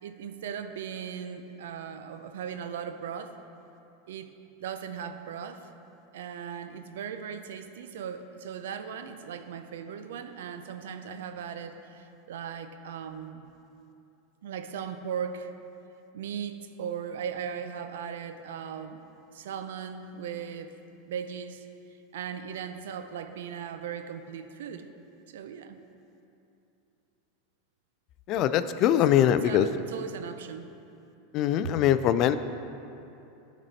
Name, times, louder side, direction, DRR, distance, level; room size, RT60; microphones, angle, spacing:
voice 1, 0.0-3.4 4.1-4.3 4.6-5.7 6.1-13.5 14.4-15.5 16.1-19.0 19.3-20.7 21.1-21.7 22.1-24.9 25.3-25.8 28.8-28.9 29.3-30.7, right 7 dB, 80° right, 9 dB, 0.5 m, -38 dB
voice 2, 28.3-29.7 31.3-32.4, left 11 dB, 50° left, 12 dB, 0.3 m, -22 dB
12.0 x 4.2 x 4.2 m, 2.8 s
hypercardioid pair, 110°, 0 cm